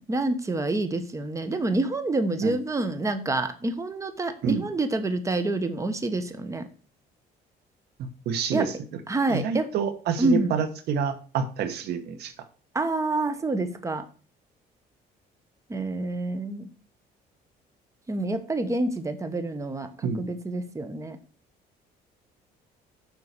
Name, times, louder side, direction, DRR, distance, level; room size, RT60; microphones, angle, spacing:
voice 1, 0.1-6.7 8.5-8.7 9.1-9.7 10.2-10.5 12.7-14.1 15.7-16.7 18.1-21.2, right 2 dB, 20° right, 9 dB, 1.1 m, -27 dB
voice 2, 8.0-8.7 9.3-12.3 20.0-20.4, right 6 dB, 75° right, 10 dB, 1.3 m, -28 dB
7.0 x 5.7 x 6.6 m, 0.39 s
cardioid pair, 110°, 17 cm